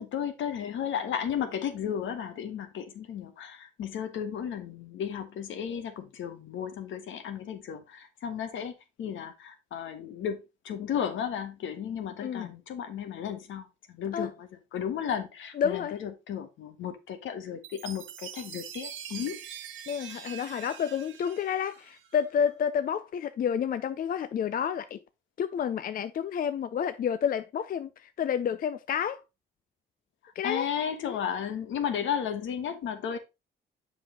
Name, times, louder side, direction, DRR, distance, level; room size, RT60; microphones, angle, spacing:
voice 1, 0.0-19.4 30.4-33.2, left 8 dB, 75° left, 1.3 m, -34 dB
voice 2, 15.6-16.0 19.9-25.0 25.4-29.2 30.4-30.7 31.0-31.2, left 8 dB, 45° left, 0.5 m, -30 dB
Chime, 17.6-22.2, right 9 dB, 75° right, 1.0 m, -44 dB
7.1 x 5.3 x 3.7 m
cardioid pair, 90°, 20 cm